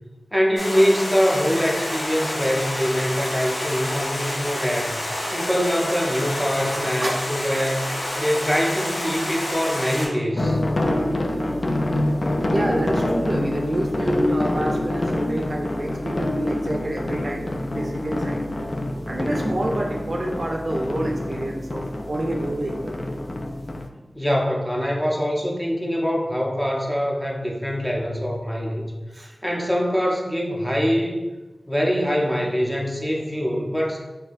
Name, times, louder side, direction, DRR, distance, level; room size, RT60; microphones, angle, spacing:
voice 1, 0.3-10.6 24.1-31.2 31.7-34.0, equal, 5° left, -1 dB, 0.6 m, -24 dB
Stream, 0.6-10.1, left 1 dB, 75° left, 0.7 m, -29 dB
sound 1, 10.4-23.9, left 1 dB, 50° left, 0.3 m, -26 dB
voice 2, 12.4-18.4 19.1-23.0 29.1-29.3, right 1 dB, 55° right, 1 dB, 0.4 m, -28 dB
4.1 x 2.5 x 2.5 m, 1.2 s
wide cardioid pair, 50°, 0 cm